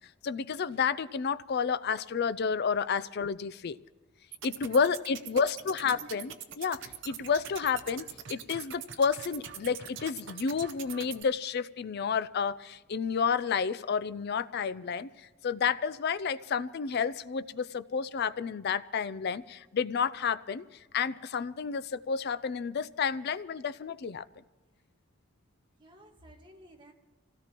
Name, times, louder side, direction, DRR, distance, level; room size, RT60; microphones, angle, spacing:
voice 1, 0.2-3.8 4.4-20.6 20.9-24.3, left 6 dB, 50° left, 14 dB, 0.4 m, -30 dB
sound 1, 4.3-11.2, right 8 dB, 60° right, 0.8 m, -44 dB
voice 2, 4.6-5.7 25.8-26.9, right 1 dB, 25° right, 1 dB, 1.6 m, -55 dB
26.0 x 16.5 x 3.0 m, 1.2 s
head